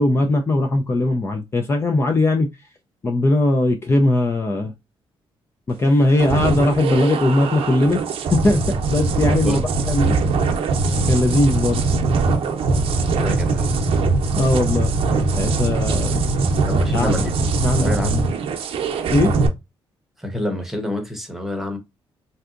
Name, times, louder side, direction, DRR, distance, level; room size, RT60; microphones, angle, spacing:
voice 1, 0.0-2.5 3.0-4.7 5.7-8.0 8.3-8.6 8.9-9.6 9.9-10.2 11.1-11.8 14.3-14.9 15.2-16.2 16.9-17.3 17.6-17.9 19.1-19.3, left 2 dB, 25° left, 0.4 m, -19 dB
sound 1, 6.2-19.5, right 3 dB, 70° right, 0.6 m, -21 dB
voice 2, 13.1-13.8 16.1-16.2 16.7-17.4 17.8-18.2 20.2-21.8, left 1 dB, 5° right, 0.9 m, -27 dB
3.4 x 2.7 x 2.4 m
cardioid pair, 120°, 10 cm